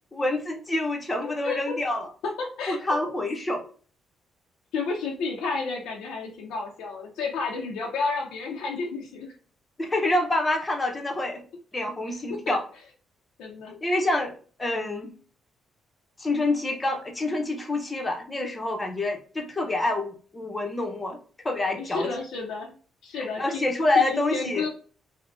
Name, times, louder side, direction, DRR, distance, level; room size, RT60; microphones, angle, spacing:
voice 1, 0.1-2.1 2.7-3.6 9.8-11.4 11.7-12.6 13.7-14.3 14.6-15.1 16.2-21.2 21.4-22.1 23.1-24.7, left 2 dB, 20° left, 3 dB, 0.7 m, -27 dB
voice 2, 1.2-1.8 2.2-2.8 4.7-9.3 12.3-12.6 13.4-13.7 21.7-22.7 23.0-24.7, left 4 dB, 90° left, -2 dB, 0.6 m, -31 dB
3.5 x 2.1 x 2.5 m, 0.41 s
cardioid pair, 90°, 0 cm